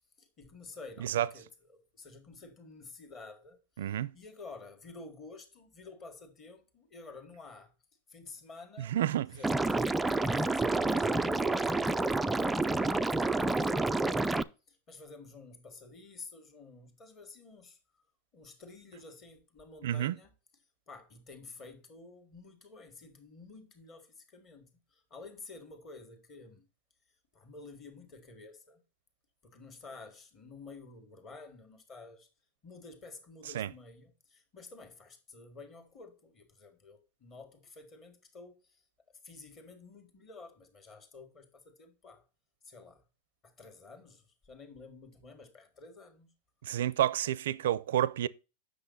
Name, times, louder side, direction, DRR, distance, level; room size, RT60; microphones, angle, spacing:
voice 1, 0.2-7.7 8.1-9.0 9.3-11.9 12.6-14.4 14.7-17.8 18.3-20.3 20.9-26.6 27.3-28.8 29.4-32.3 32.6-38.8 39.2-42.2 42.6-43.0 43.4-46.3, left 3 dB, 25° left, 1.7 m, -51 dB
voice 2, 3.8-4.1 8.8-9.4 19.8-20.1 33.5-33.7 46.6-48.3, right 12 dB, 80° right, 0.4 m, -30 dB
Liquid, 9.4-14.4, right 2 dB, 5° right, 0.3 m, -29 dB
7.9 x 6.3 x 4.0 m
supercardioid pair, 155°, 0 cm